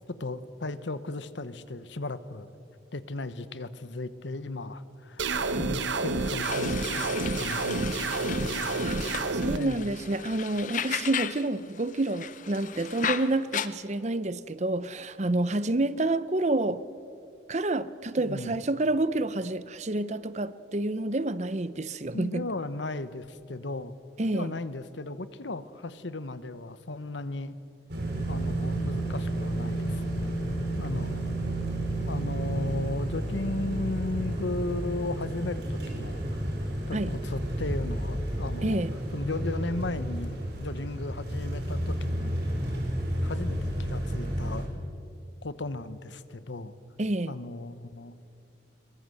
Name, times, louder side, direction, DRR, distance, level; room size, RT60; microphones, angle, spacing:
voice 1, 0.2-2.5 2.9-8.6 9.5-9.9 18.2-18.5 22.1-24.0 24.3-27.6 28.3-30.4 30.8-31.3 32.1-36.2 36.9-38.8 39.1-42.3 43.2-44.7 45.4-46.7 47.3-48.2, left 2 dB, 80° left, 14 dB, 1.0 m, -36 dB
sound 1, 5.2-9.6, right 3 dB, 80° right, 1.1 m, -29 dB
sound 2, 6.4-11.5 11.8-13.7, left 8 dB, 45° left, 0.7 m, -35 dB
voice 2, 9.4-16.8 17.5-22.5 24.2-24.5 36.9-37.2 38.6-38.9 47.0-47.3, right 2 dB, 40° right, 15 dB, 0.7 m, -28 dB
sound 3, 27.9-44.6, right 1 dB, 60° right, 5.0 m, -31 dB
22.5 x 21.0 x 7.8 m, 2.4 s
head